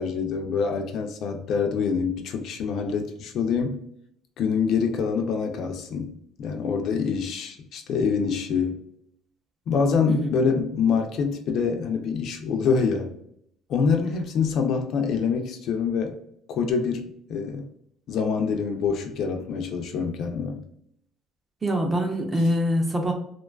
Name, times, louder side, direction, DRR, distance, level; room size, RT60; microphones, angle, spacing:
voice 1, 0.0-3.8 4.4-8.8 9.7-13.1 13.7-16.2 16.5-17.6 18.1-20.6, left 5 dB, 55° left, 5 dB, 0.3 m, -25 dB
voice 2, 21.6-23.1, equal, 15° right, 2 dB, 0.4 m, -24 dB
2.5 x 2.2 x 2.3 m, 0.72 s
cardioid pair, 160°, 0 cm